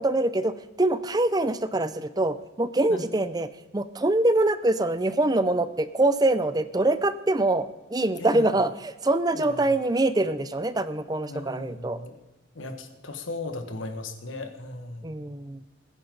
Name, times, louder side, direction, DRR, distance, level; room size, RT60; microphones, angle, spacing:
voice 1, 0.0-12.0 15.0-15.6, right 2 dB, 20° right, 13 dB, 0.5 m, -24 dB
voice 2, 8.2-8.6 9.3-9.8 11.3-12.2 12.5-15.1, left 2 dB, 85° left, 7 dB, 1.7 m, -37 dB
21.0 x 10.0 x 3.9 m, 1.1 s
head